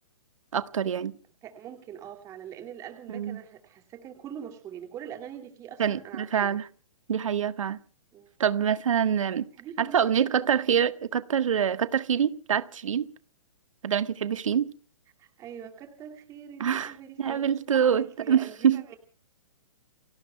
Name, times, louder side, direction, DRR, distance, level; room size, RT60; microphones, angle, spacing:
voice 1, 0.5-1.1 3.1-3.4 5.8-6.6 7.1-7.8 8.4-9.5 9.8-13.1 13.8-14.7 16.6-18.8, right 8 dB, 75° right, 1.4 m, -25 dB
voice 2, 1.4-6.6 8.1-8.3 9.6-10.3 15.2-19.0, right 9 dB, 20° right, 2.4 m, -43 dB
30.0 x 21.5 x 2.3 m
hypercardioid pair, 155°, 17 cm